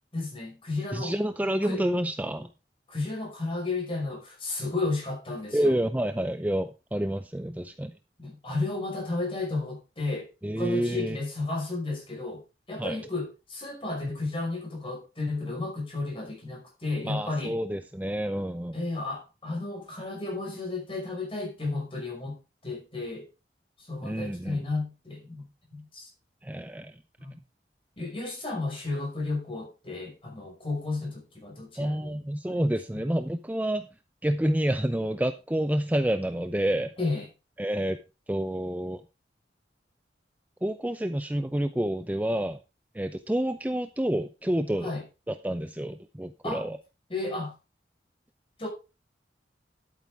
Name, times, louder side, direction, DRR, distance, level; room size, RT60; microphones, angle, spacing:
voice 1, 0.1-1.1 1.6-1.8 2.9-5.8 8.2-12.4 12.7-17.6 18.7-22.4 22.6-23.3 23.8-26.1 27.2-27.3 28.0-32.2 32.5-32.6 32.9-33.0 37.0-37.2 44.8-45.0 46.4-46.6 47.1-47.5 48.6-48.7, left 3 dB, 30° left, 5.5 m, -33 dB
voice 2, 0.9-2.5 5.5-7.9 10.4-11.2 12.8-13.0 17.0-18.8 24.0-24.6 26.4-27.0 31.8-33.9 34.2-36.9 37.6-38.0 38.3-39.0 40.6-42.6 42.9-44.9 45.3-46.8, right 1 dB, 10° right, 0.5 m, -28 dB
11.5 x 8.9 x 3.6 m
head